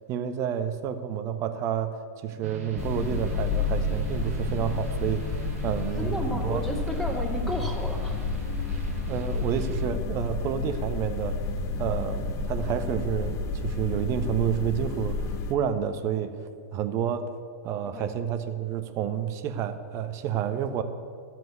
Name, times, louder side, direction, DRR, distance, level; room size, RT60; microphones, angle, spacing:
voice 1, 0.1-5.4 5.6-6.6 9.1-11.4 11.8-16.4 16.7-17.3 17.6-20.8, right 9 dB, 35° right, 9 dB, 1.2 m, -29 dB
sound 1, 2.4-9.9, right 1 dB, 65° right, 2.0 m, -40 dB
sound 2, 2.8-15.5, left 3 dB, 35° left, 0.9 m, -30 dB
voice 2, 6.0-8.2 17.9-18.1, equal, 5° left, -1 dB, 2.6 m, -33 dB
13.0 x 7.6 x 9.4 m, 2.3 s
hypercardioid pair, 110°, 9 cm